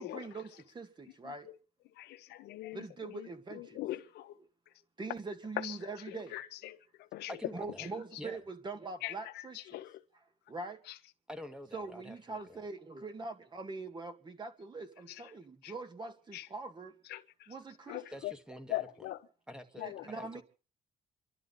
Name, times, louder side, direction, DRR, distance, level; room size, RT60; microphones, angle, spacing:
voice 1, 0.0-1.5 2.7-3.8 4.4-4.5 5.0-6.4 7.5-9.8 10.1-10.8 11.7-17.0 17.5-18.0 19.8-20.4, right 3 dB, 25° right, 2.1 m, -43 dB
voice 2, 2.0-4.4 5.6-5.8 6.1-7.3 9.0-10.0 15.6-15.7 16.3-16.5 17.1-17.5 17.9-18.3 18.7-19.2 19.8-20.1, left 16 dB, 80° left, 1.0 m, -42 dB
voice 3, 7.3-8.4 11.3-12.6 18.1-18.9 19.5-20.4, left 1 dB, 5° right, 1.8 m, -47 dB
28.0 x 12.0 x 4.0 m
cardioid pair, 110°, 17 cm